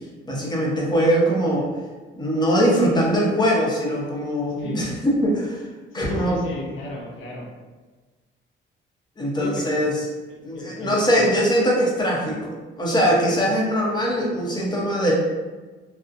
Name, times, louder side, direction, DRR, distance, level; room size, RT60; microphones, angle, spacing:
voice 1, 0.3-1.7 2.2-5.6 5.9-6.4 9.2-9.9 10.4-15.1, equal, 20° left, -4 dB, 0.7 m, -21 dB
voice 2, 5.9-7.5 9.4-9.8 10.3-11.3 13.4-13.5, left 2 dB, 80° left, -2 dB, 0.6 m, -34 dB
2.6 x 2.1 x 2.5 m, 1.3 s
cardioid pair, 90°, 20 cm